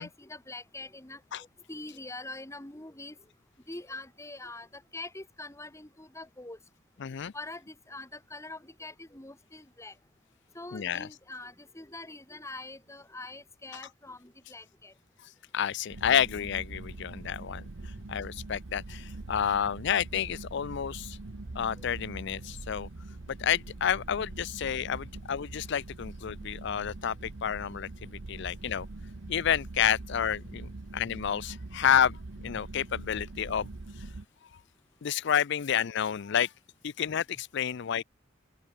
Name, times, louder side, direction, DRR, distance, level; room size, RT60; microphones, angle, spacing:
voice 1, 0.0-1.2 1.7-3.2 3.7-6.6 7.3-9.9 10.5-14.9 21.8-21.9, left 2 dB, 15° left, 1.9 m, -44 dB
voice 2, 7.0-7.3 10.7-11.1 13.7-13.8 15.5-17.7 18.1-21.2 21.5-22.9 23.3-28.9 29.3-33.7 35.0-36.5 36.8-38.0, left 8 dB, 65° left, 0.5 m, -30 dB
sound 1, 15.9-34.3, right 2 dB, 70° right, 1.0 m, -43 dB
open air
head